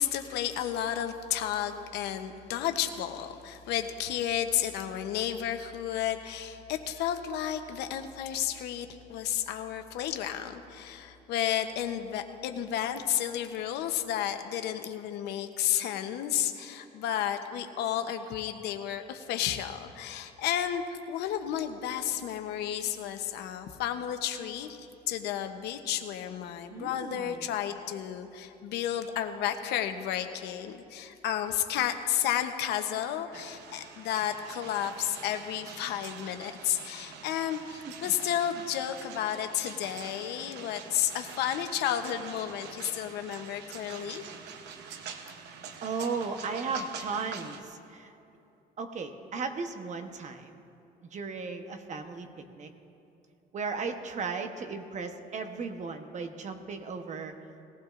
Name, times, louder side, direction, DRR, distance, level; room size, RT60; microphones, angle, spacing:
voice 1, 0.0-44.2, left 10 dB, 80° left, 7 dB, 0.8 m, -32 dB
voice 2, 26.7-27.5 37.8-38.1 45.8-48.1 48.8-50.5 51.1-52.7 53.5-57.3, right 4 dB, 45° right, 6 dB, 1.0 m, -36 dB
sound 1, 33.3-47.6, right 6 dB, 85° right, 0.9 m, -45 dB
20.0 x 15.0 x 2.5 m, 2.7 s
cardioid pair, 110°, 17 cm